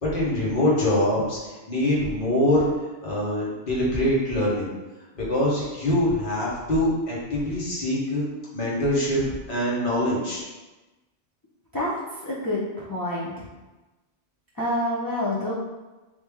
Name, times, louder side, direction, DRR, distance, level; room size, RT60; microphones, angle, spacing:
voice 1, 0.0-2.7 3.0-4.7 5.1-8.3 8.5-9.2 9.5-10.4, left 1 dB, 45° left, -6 dB, 1.2 m, -24 dB
voice 2, 12.3-13.5 14.6-15.5, left 1 dB, 30° left, -8 dB, 0.4 m, -27 dB
3.3 x 2.7 x 3.5 m, 1.1 s
omnidirectional pair, 1.2 m